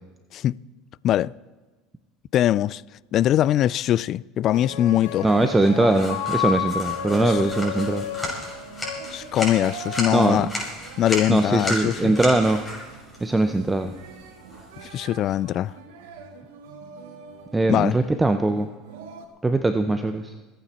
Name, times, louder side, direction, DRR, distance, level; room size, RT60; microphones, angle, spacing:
voice 1, 2.3-2.8 3.1-5.3 7.2-7.4 9.1-10.5 11.0-12.2 14.8-15.7 17.7-18.0, left 12 dB, 50° left, 0.3 m, -22 dB
sound 1, 4.5-9.8, left 9 dB, 90° left, 2.0 m, -31 dB
voice 2, 5.2-8.0 10.1-10.5 11.3-12.6 13.2-13.9 17.5-18.7 19.4-20.3, right 2 dB, 10° right, 0.8 m, -21 dB
sound 2, 5.2-19.3, right 5 dB, 80° right, 2.1 m, -44 dB
sound 3, 5.9-15.0, left 1 dB, 15° left, 6.3 m, -34 dB
25.5 x 9.0 x 4.4 m
supercardioid pair, 105°, 0 cm